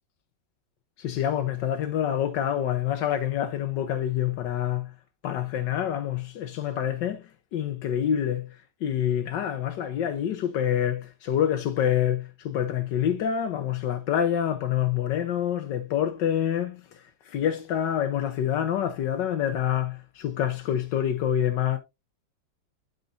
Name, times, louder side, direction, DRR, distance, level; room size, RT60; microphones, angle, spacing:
voice 1, 1.0-4.9 5.2-7.2 7.5-8.5 8.8-21.8, left 10 dB, 80° left, 1.5 m, -27 dB
12.5 x 5.2 x 2.6 m
omnidirectional pair, 1.9 m